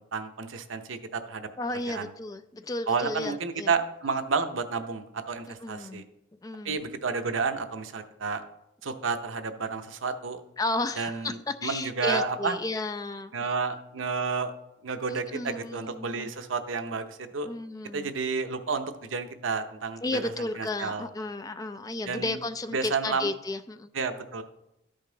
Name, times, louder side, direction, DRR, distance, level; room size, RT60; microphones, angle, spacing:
voice 1, 0.1-1.5 1.9-2.0 2.9-6.0 6.6-8.4 8.8-10.4 11.0-12.5 13.3-14.5 14.8-17.5 17.9-20.2 20.6-21.1 22.1-22.4 22.7-23.3 23.9-24.4, right 5 dB, 85° right, 8 dB, 0.8 m, -31 dB
voice 2, 1.6-3.7 5.6-6.0 6.4-6.8 10.6-13.5 15.1-16.3 17.4-18.1 20.0-23.9, left 2 dB, 20° left, 10 dB, 0.3 m, -33 dB
13.0 x 5.3 x 3.9 m, 0.85 s
head